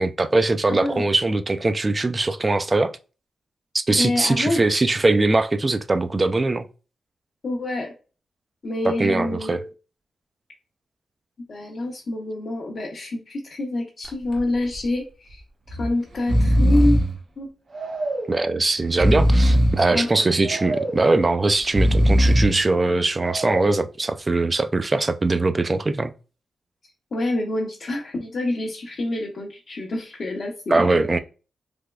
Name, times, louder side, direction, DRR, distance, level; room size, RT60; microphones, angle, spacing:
voice 1, 0.0-3.0 3.7-6.7 8.8-9.6 18.3-26.1 30.7-31.2, right 2 dB, 30° right, 0.3 m, -21 dB
voice 2, 0.7-1.1 3.9-4.6 7.4-7.9 8.6-9.7 11.5-15.4 15.7-17.0 17.4-17.5 19.9-20.6 27.1-30.9, left 2 dB, 60° left, 0.7 m, -27 dB
Breathing, 14.0-14.4 14.7-14.8 15.7-15.9 16.1-17.2 17.7-18.4 18.8-19.9 20.4-21.1 21.6-22.6 23.2-23.8, equal, 50° right, 0.9 m, -20 dB
3.4 x 2.9 x 2.3 m
cardioid pair, 80°, 0 cm